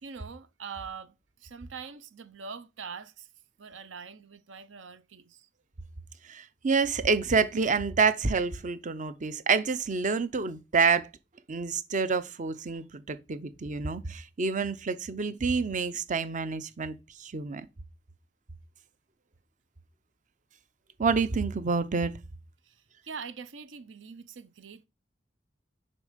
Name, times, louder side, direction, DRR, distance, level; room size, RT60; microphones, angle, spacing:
voice 1, 0.0-1.1 1.4-3.3 3.6-5.5 22.7-22.8 23.0-24.9, right 5 dB, 75° right, 0.7 m, -43 dB
voice 2, 6.2-11.1 11.5-17.7 21.0-22.1, right 4 dB, 40° right, 0.6 m, -28 dB
6.8 x 5.4 x 5.0 m
head